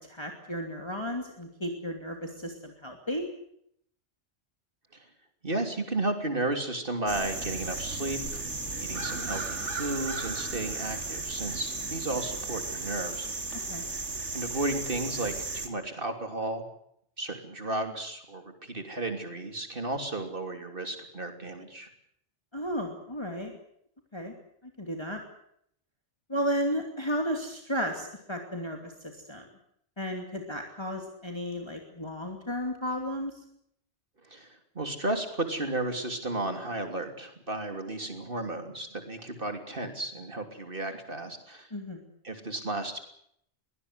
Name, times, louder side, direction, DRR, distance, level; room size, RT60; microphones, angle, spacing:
voice 1, 0.0-3.3 13.7-13.8 22.5-23.6 24.1-24.3 24.6-25.2 26.3-29.4 30.0-33.4 41.7-42.0, equal, 25° left, 3 dB, 2.8 m, -33 dB
voice 2, 5.4-8.4 8.8-13.3 14.3-16.6 17.2-21.9 34.2-41.7 42.2-43.0, right 2 dB, 50° right, 6 dB, 3.4 m, -33 dB
sound 1, 7.1-15.7, right 3 dB, 85° right, 2.5 m, -35 dB
23.0 x 18.5 x 8.1 m, 0.70 s
omnidirectional pair, 1.2 m